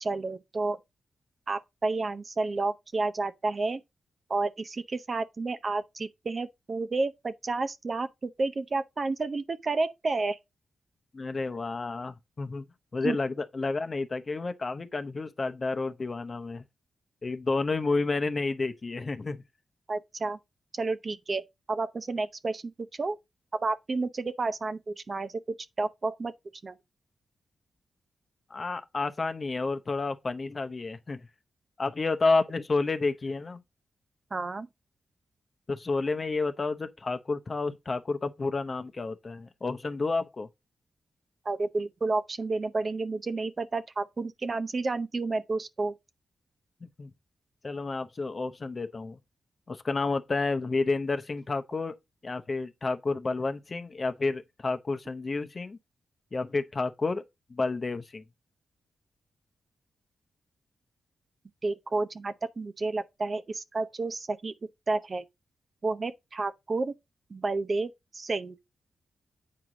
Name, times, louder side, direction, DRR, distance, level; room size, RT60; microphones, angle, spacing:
voice 1, 0.0-0.8 1.5-3.8 4.3-10.4 13.0-13.2 19.9-20.4 20.8-21.4 21.7-22.6 22.9-23.2 23.5-25.4 25.8-26.3 26.6-26.8 34.3-34.7 41.4-45.9 61.6-64.5 64.9-65.2 65.8-66.9 67.3-68.6, right 3 dB, 35° right, 0.6 m, -30 dB
voice 2, 11.1-12.6 12.9-16.6 17.2-19.4 28.5-31.3 31.8-33.6 35.7-40.5 46.8-47.1 47.6-49.2 49.7-52.0 52.2-55.8 56.3-57.2 57.5-58.2, left 3 dB, 35° left, 0.8 m, -30 dB
8.5 x 4.7 x 3.8 m
wide cardioid pair, 120°, 0 cm